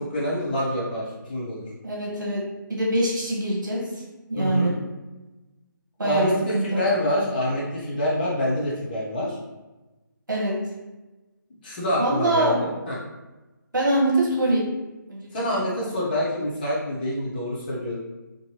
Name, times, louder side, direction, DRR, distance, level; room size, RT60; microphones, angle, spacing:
voice 1, 0.0-1.7 4.4-4.7 6.0-9.4 11.6-13.0 15.3-18.0, left 1 dB, 25° left, -6 dB, 0.7 m, -26 dB
voice 2, 1.8-4.8 6.0-6.8 10.3-10.6 12.0-12.6 13.7-14.7 15.1-15.5, right 1 dB, 60° right, -4 dB, 1.1 m, -24 dB
2.7 x 2.6 x 2.8 m, 1.1 s
figure-of-eight pair, 150°, 11 cm